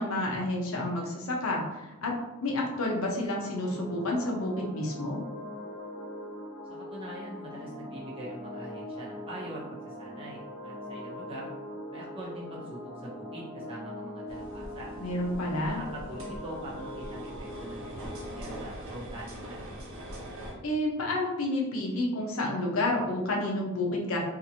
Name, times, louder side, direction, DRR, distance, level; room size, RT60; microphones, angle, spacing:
voice 1, 0.0-2.1 2.4-5.2 15.0-15.8 20.6-24.2, left 1 dB, 80° left, -1 dB, 0.7 m, -30 dB
sound 1, 3.3-18.7, equal, ahead, 1.0 m, -42 dB
voice 2, 6.7-11.5 11.9-14.9 15.7-19.6, right 1 dB, 25° right, -5 dB, 0.6 m, -43 dB
sound 2, 14.3-20.5, right 1 dB, 65° right, 0.6 m, -43 dB
2.8 x 2.4 x 2.7 m, 1.0 s
head